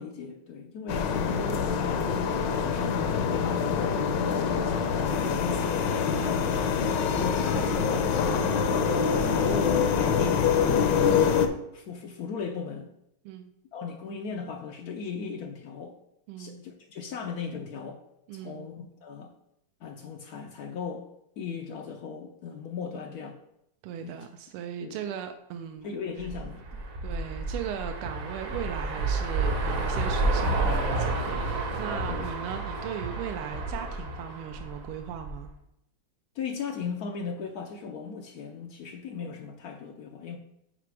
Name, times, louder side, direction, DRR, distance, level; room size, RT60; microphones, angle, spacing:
voice 1, 0.0-4.0 4.5-8.1 8.6-11.4 11.7-12.9 13.7-16.0 16.4-18.0 18.3-19.3 19.8-21.0 21.4-23.4 24.0-24.2 24.8-25.0 25.8-26.8 32.1-32.3 36.3-40.4, left 5 dB, 90° left, 2 dB, 0.8 m, -37 dB
sound 1, 0.9-11.5, left 6 dB, 70° left, 1.2 m, -25 dB
voice 2, 16.3-16.6 18.3-18.7 23.8-25.9 27.0-35.5, right 9 dB, 90° right, 6 dB, 1.5 m, -38 dB
sound 2, 26.2-35.4, right 2 dB, 55° right, 0.9 m, -30 dB
5.9 x 5.0 x 4.7 m, 0.81 s
omnidirectional pair, 2.4 m